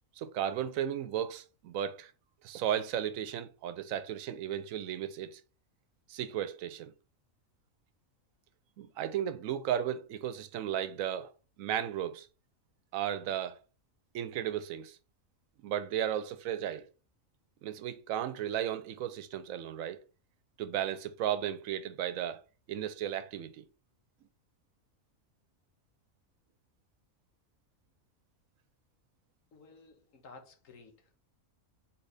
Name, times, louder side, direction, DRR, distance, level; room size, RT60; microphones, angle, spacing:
voice 1, 0.2-2.1 2.4-5.4 6.1-6.9 8.8-11.3 11.6-12.3 12.9-13.6 14.1-15.0 15.6-16.9 17.6-20.0 20.6-22.4 22.7-23.7, right 10 dB, 90° right, 1.0 m, -34 dB
voice 2, 29.5-31.1, left 4 dB, 80° left, 1.5 m, -54 dB
4.0 x 4.0 x 3.3 m
omnidirectional pair, 1.4 m